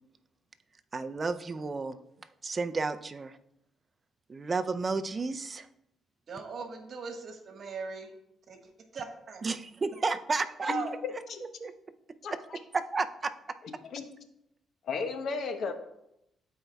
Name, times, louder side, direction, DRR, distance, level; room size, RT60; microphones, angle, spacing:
voice 1, 0.9-3.4 4.3-5.7 9.4-10.7 11.6-11.7 12.3-12.4 12.7-13.3 15.7-15.8, right 4 dB, 35° right, 10 dB, 0.4 m, -32 dB
voice 2, 6.3-8.1 8.5-8.6 8.9-9.5 10.6-10.9, right 4 dB, 55° right, 3 dB, 1.3 m, -38 dB
voice 3, 14.8-15.7, left 4 dB, 65° left, 7 dB, 0.8 m, -33 dB
13.0 x 4.6 x 2.3 m, 0.83 s
cardioid pair, 90°, 0 cm